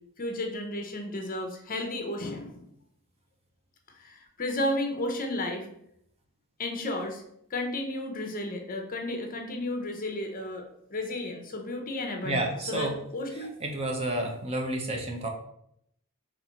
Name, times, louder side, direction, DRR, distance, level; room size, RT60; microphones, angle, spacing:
voice 1, 0.2-2.7 3.9-5.7 6.6-7.2 7.5-10.6 10.9-13.5, left 1 dB, 40° left, 3 dB, 0.8 m, -33 dB
voice 2, 12.2-13.0 13.6-15.3, right 1 dB, 30° right, 2 dB, 0.6 m, -30 dB
4.2 x 3.0 x 4.2 m, 0.74 s
head